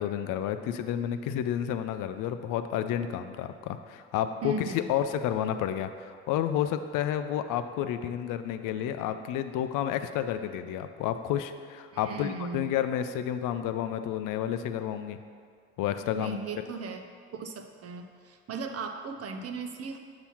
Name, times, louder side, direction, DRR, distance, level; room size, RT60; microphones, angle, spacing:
voice 1, 0.0-15.2 15.8-16.4, left 10 dB, 65° left, 10 dB, 0.5 m, -30 dB
voice 2, 4.4-4.8 11.9-12.7 16.2-17.0 17.3-20.0, right 4 dB, 45° right, 5 dB, 0.7 m, -37 dB
6.9 x 2.9 x 5.7 m, 2.1 s
hypercardioid pair, 55°, 35 cm